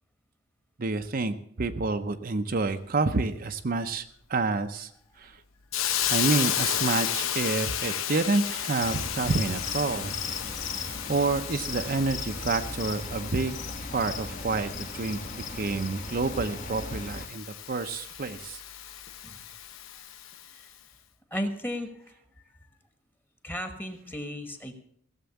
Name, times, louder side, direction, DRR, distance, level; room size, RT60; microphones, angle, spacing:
voice 1, 0.8-4.9 5.2-5.4 6.1-10.1 11.1-13.6 13.9-18.6, right 3 dB, 45° right, 7 dB, 0.6 m, -28 dB
Hiss, 5.7-20.5, left 10 dB, 85° left, 0.8 m, -33 dB
sound 1, 8.8-17.3, left 3 dB, 40° left, 1.3 m, -37 dB
voice 2, 21.3-21.9 23.4-24.7, equal, 10° left, 7 dB, 1.3 m, -34 dB
16.5 x 7.5 x 7.0 m, 0.65 s
head